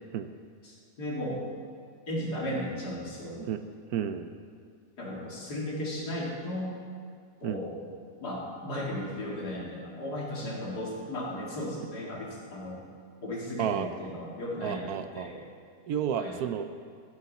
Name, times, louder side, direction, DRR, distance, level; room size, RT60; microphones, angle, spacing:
voice 1, 0.6-1.4 2.1-3.4 5.0-6.8 7.4-7.8 8.2-12.8 13.2-15.4 16.2-16.4, left 1 dB, 75° left, -4 dB, 3.0 m, -35 dB
voice 2, 3.9-4.3 7.4-7.6 13.6-13.9 14.6-15.3 15.9-16.7, right 8 dB, 75° right, 9 dB, 1.1 m, -31 dB
14.5 x 12.0 x 4.2 m, 2.1 s
omnidirectional pair, 1.7 m